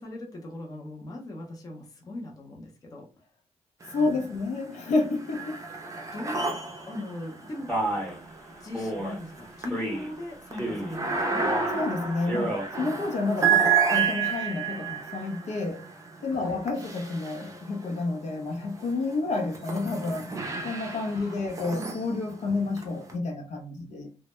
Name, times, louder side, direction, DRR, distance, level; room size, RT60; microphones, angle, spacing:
voice 1, 0.0-3.1 4.0-4.2 6.1-6.5 6.9-7.7 8.6-11.4 16.3-16.6 21.1-21.5, left 1 dB, 30° left, 0.6 m, -39 dB
sound 1, 3.8-4.5 4.8-18.0 18.6-23.1, right 6 dB, 25° right, 0.5 m, -31 dB
voice 2, 3.9-5.6 11.7-15.8 16.2-20.4 20.6-24.2, left 3 dB, 75° left, 0.6 m, -30 dB
Male speech man speaking, 7.7-8.2 8.7-9.1 9.7-10.1 10.5-11.0 11.4-11.8 12.2-12.7, right 1 dB, 5° left, 0.8 m, -30 dB
2.1 x 2.0 x 2.9 m
wide cardioid pair, 155°, 12 cm